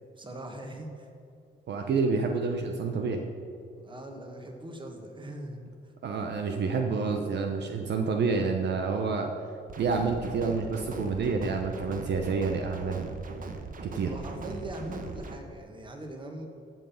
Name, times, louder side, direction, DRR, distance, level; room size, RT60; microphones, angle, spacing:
voice 1, 0.1-1.1 3.8-5.7 14.1-16.5, right 1 dB, 25° right, 3 dB, 1.8 m, -41 dB
voice 2, 1.7-3.2 6.0-9.3 9.8-13.1 13.9-14.1, right 4 dB, 60° right, 3 dB, 0.9 m, -28 dB
sound 1, 9.7-15.4, right 4 dB, 45° right, 1.1 m, -40 dB
14.5 x 5.5 x 5.8 m, 2.6 s
cardioid pair, 90°, 20 cm